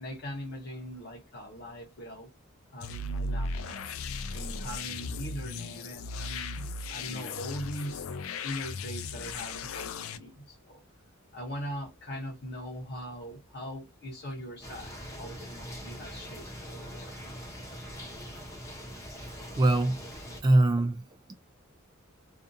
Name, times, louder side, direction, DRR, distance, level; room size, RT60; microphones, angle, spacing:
voice 1, 0.0-2.3 2.7-3.9 4.3-8.1 8.4-10.8 11.3-17.2, equal, 55° left, 0.8 m, -41 dB
sound 1, 2.8-10.2, left 3 dB, 75° left, 0.4 m, -36 dB
sound 2, 14.6-20.4, equal, 15° left, 0.7 m, -42 dB
voice 2, 19.2-20.0 20.4-21.4, right 2 dB, 20° right, 0.3 m, -24 dB
2.5 x 2.4 x 2.5 m
head